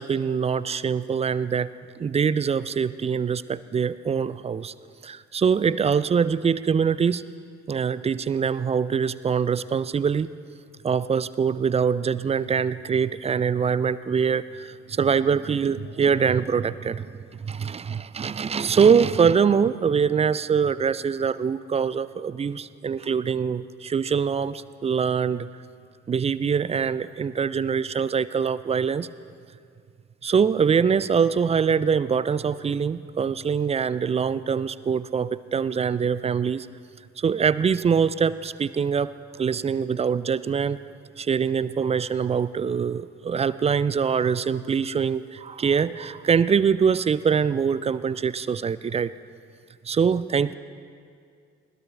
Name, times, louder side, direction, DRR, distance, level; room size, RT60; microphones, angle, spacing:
voice 1, 0.0-1.7 2.0-4.7 5.0-7.2 7.7-10.3 10.8-17.1 17.4-25.5 26.1-29.1 30.2-36.7 37.2-39.1 39.4-40.8 41.2-49.1 49.8-50.5, right 6 dB, 20° right, 17 dB, 0.3 m, -23 dB
20.5 x 15.0 x 3.4 m, 2.3 s
figure-of-eight pair, 45°, 37 cm